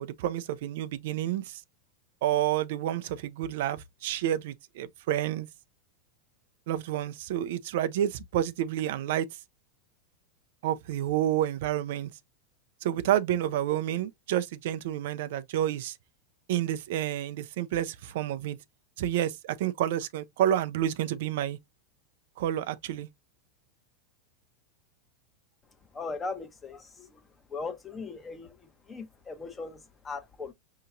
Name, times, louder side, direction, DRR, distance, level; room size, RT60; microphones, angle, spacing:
voice 1, 0.0-1.6 2.2-5.5 6.7-9.3 10.6-12.1 12.8-16.0 16.5-18.6 19.0-21.6 22.4-23.1, right 11 dB, 70° right, 0.4 m, -29 dB
voice 2, 25.9-27.2 27.5-30.5, left 4 dB, 20° left, 0.9 m, -39 dB
5.5 x 2.9 x 2.6 m
hypercardioid pair, 120°, 0 cm